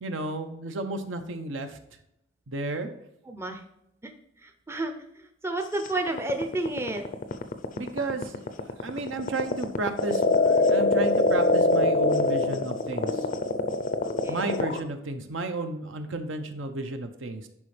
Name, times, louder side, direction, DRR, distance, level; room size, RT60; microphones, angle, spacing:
voice 1, 0.0-1.8 2.5-2.9 7.8-13.3 14.3-17.5, right 2 dB, 70° right, 7 dB, 0.9 m, -33 dB
voice 2, 3.3-3.6 4.0-4.1 4.4-7.1 14.0-14.4, right 2 dB, 15° right, 5 dB, 0.6 m, -31 dB
sound 1, 5.8-14.8, left 2 dB, 45° left, 0.5 m, -23 dB
11.0 x 4.3 x 3.3 m, 0.80 s
head